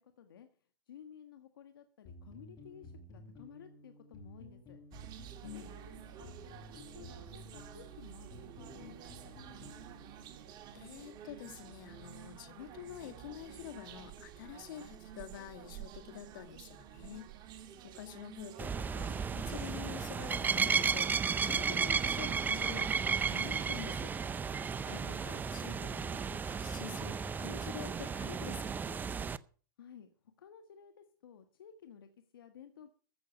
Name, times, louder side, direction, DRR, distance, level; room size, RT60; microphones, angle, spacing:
voice 1, 0.0-4.8 5.5-9.8 24.9-25.1 29.8-32.9, left 8 dB, 85° left, 1.5 m, -55 dB
sound 1, 2.0-10.5, left 1 dB, 30° left, 5.0 m, -54 dB
sound 2, 4.9-23.8, right 10 dB, 40° right, 1.9 m, -51 dB
voice 2, 5.4-5.7 10.7-17.3 17.8-24.1 24.4-29.0, left 10 dB, 65° left, 2.4 m, -48 dB
sound 3, 18.6-29.4, right 6 dB, 15° right, 0.5 m, -34 dB
15.0 x 6.5 x 8.4 m
hypercardioid pair, 120°, 12 cm